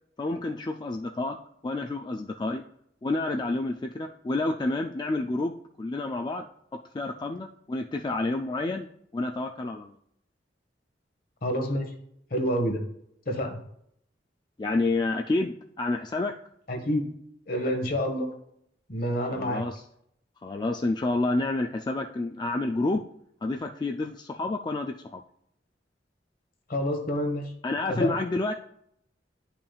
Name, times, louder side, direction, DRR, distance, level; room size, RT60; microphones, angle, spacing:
voice 1, 0.2-1.4 1.6-2.6 3.0-6.5 6.7-8.9 9.1-10.0 14.6-16.4 19.3-19.8 20.4-23.0 23.4-25.2 27.6-28.5, left 2 dB, 25° left, 4 dB, 0.3 m, -29 dB
voice 2, 11.4-11.9 12.3-12.8 13.3-13.6 16.7-17.0 17.5-18.3 18.9-19.6 26.7-27.5 27.9-28.1, equal, 55° left, 5 dB, 1.2 m, -28 dB
10.5 x 5.7 x 2.3 m, 0.72 s
head